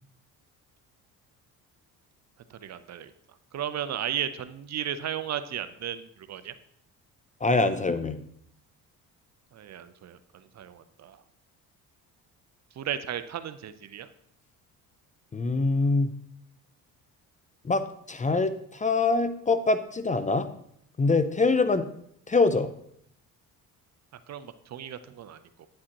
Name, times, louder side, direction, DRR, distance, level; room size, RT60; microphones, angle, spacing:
voice 1, 2.5-3.1 3.5-6.5 9.5-11.2 12.8-14.1 24.3-25.7, right 10 dB, 45° right, 11 dB, 0.6 m, -35 dB
voice 2, 7.4-8.2 15.3-16.1 17.6-20.5 21.0-21.8 22.3-22.7, left 3 dB, 20° left, 11 dB, 0.5 m, -24 dB
9.7 x 7.6 x 2.9 m, 0.69 s
supercardioid pair, 85°, 36 cm